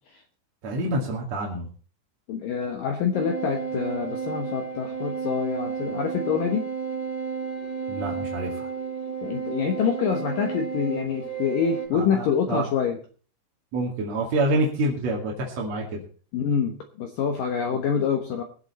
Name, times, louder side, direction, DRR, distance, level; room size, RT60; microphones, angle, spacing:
voice 1, 0.6-1.7 7.9-8.7 11.9-12.7 13.7-16.0 17.7-17.8, right 1 dB, 45° right, -2 dB, 2.7 m, -27 dB
voice 2, 2.3-6.7 9.2-13.0 16.3-18.4, left 7 dB, 80° left, 4 dB, 1.9 m, -26 dB
sound 1, 3.1-11.9, right 6 dB, 15° left, 5.0 m, -32 dB
21.5 x 8.0 x 4.2 m, 0.40 s
omnidirectional pair, 5.7 m